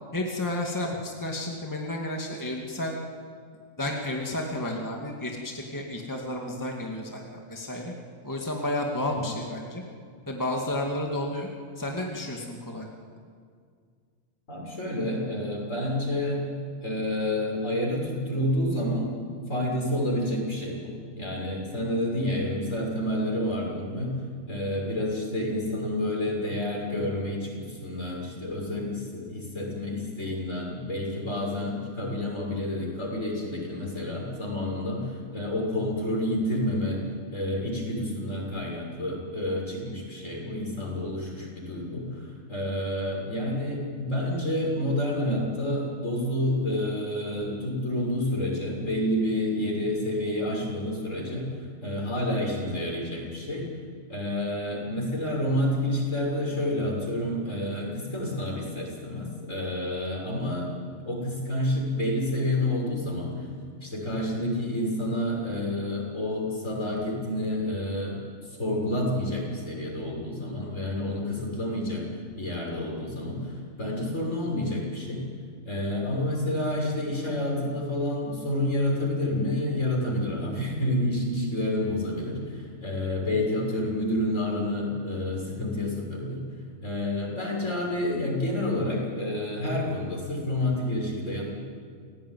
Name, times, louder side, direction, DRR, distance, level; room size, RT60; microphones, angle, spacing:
voice 1, 0.1-3.0 3.8-7.9 8.2-9.8 10.3-11.5 11.8-12.9, left 1 dB, 15° left, 0 dB, 2.4 m, -31 dB
voice 2, 14.5-16.5 16.8-19.2 19.5-24.2 24.5-37.0 37.3-51.5 51.8-53.6 54.1-60.7 61.0-63.3 63.8-68.2 68.6-72.0 72.4-75.3 75.7-86.4 86.8-91.4, left 1 dB, 60° left, -2 dB, 7.2 m, -29 dB
29.0 x 18.5 x 9.5 m, 2.1 s
omnidirectional pair, 1.4 m